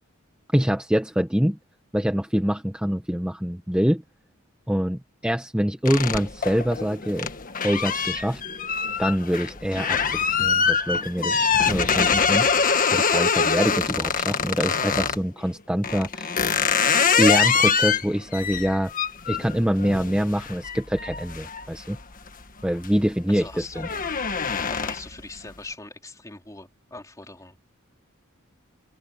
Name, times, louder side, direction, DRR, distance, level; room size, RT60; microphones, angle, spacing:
voice 1, 0.5-1.6 1.9-4.0 4.7-7.3 7.6-8.4 9.0-16.4 17.2-18.9 19.3-22.0 22.6-23.9, equal, 5° right, 1.3 m, -25 dB
sound 1, 5.8-15.2 15.8-22.3 22.7-23.1 23.4-25.2, left 6 dB, 40° left, 1.6 m, -24 dB
voice 2, 23.3-24.0 24.7-27.6, left 2 dB, 15° left, 4.0 m, -41 dB
head